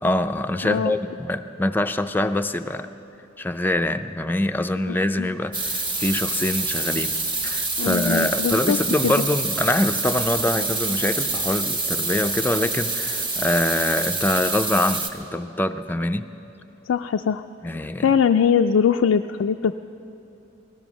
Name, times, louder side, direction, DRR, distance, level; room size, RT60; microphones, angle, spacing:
voice 1, 0.0-2.9 3.4-7.1 7.4-16.3 17.6-18.1, left 1 dB, 10° left, 7 dB, 0.4 m, -24 dB
voice 2, 0.6-0.9 4.9-5.3 7.8-8.8 9.0-9.1 16.9-17.4 18.0-19.8, left 7 dB, 75° left, 5 dB, 0.3 m, -21 dB
sound 1, 5.5-15.1, right 3 dB, 25° right, 1.1 m, -26 dB
18.5 x 12.5 x 6.1 m, 2.9 s
head